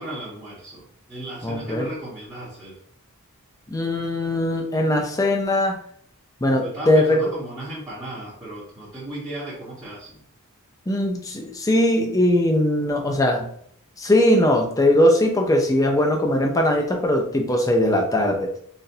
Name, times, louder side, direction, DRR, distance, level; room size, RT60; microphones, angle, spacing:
voice 1, 0.0-2.8 6.6-10.2, right 1 dB, 15° right, -9 dB, 1.0 m, -36 dB
voice 2, 1.4-1.9 3.7-5.8 6.4-7.2 10.9-13.5 14.0-18.5, left 1 dB, 15° left, 2 dB, 0.5 m, -20 dB
3.9 x 2.5 x 2.7 m, 0.64 s
head